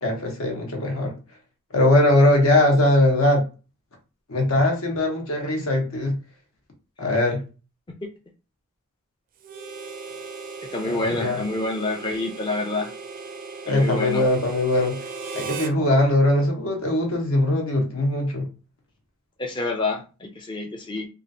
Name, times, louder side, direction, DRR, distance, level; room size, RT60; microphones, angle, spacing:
voice 1, 0.0-1.1 1.7-3.4 4.3-6.1 7.0-7.4 10.9-11.4 13.7-14.9 15.3-18.5, left 1 dB, 70° left, 1 dB, 1.0 m, -20 dB
Harmonica, 9.4-15.8, right 5 dB, 40° right, 0.4 m, -37 dB
voice 2, 10.7-12.9 13.7-14.2 19.4-21.1, left 2 dB, 20° left, 0 dB, 0.5 m, -27 dB
3.0 x 2.5 x 2.6 m, 0.33 s
head